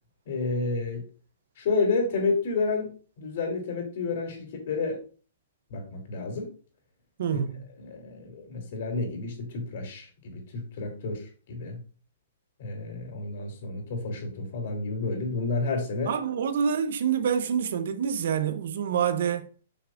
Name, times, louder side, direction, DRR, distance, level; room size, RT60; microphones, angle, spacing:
voice 1, 0.3-1.0 1.6-5.0 5.7-6.5 7.3-7.4 7.8-11.8 12.6-16.1, left 3 dB, 50° left, 3.0 m, -30 dB
voice 2, 7.2-7.7 16.1-19.5, right 7 dB, 60° right, 0.8 m, -27 dB
8.5 x 6.0 x 2.6 m
hypercardioid pair, 160°, 0 cm